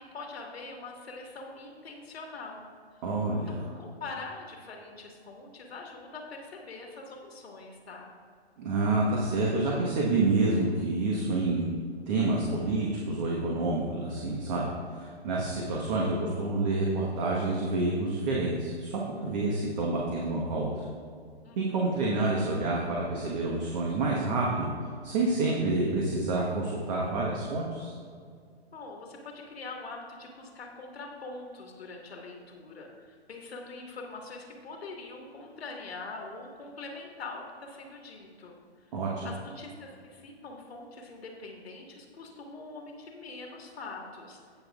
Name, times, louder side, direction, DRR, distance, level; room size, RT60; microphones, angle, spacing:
voice 1, 0.0-2.6 3.5-8.1 19.3-19.7 21.4-21.8 28.7-38.8 39.2-44.4, left 3 dB, 70° left, 0 dB, 1.8 m, -43 dB
voice 2, 3.0-3.6 8.6-11.6 12.1-14.7 14.9-20.9 21.6-24.7 25.0-27.9 38.9-39.3, right 2 dB, 40° right, -2 dB, 1.3 m, -28 dB
17.5 x 6.3 x 2.4 m, 2.2 s
figure-of-eight pair, 120°, 32 cm